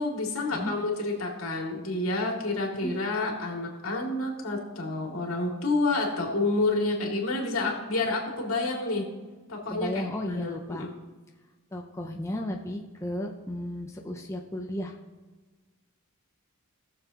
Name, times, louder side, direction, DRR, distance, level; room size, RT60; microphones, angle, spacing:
voice 1, 0.0-9.1 9.5-10.9, left 2 dB, 70° left, 0 dB, 2.4 m, -29 dB
voice 2, 9.7-10.9 11.7-15.0, left 1 dB, 15° left, 1 dB, 0.6 m, -34 dB
19.5 x 7.0 x 2.9 m, 1.3 s
head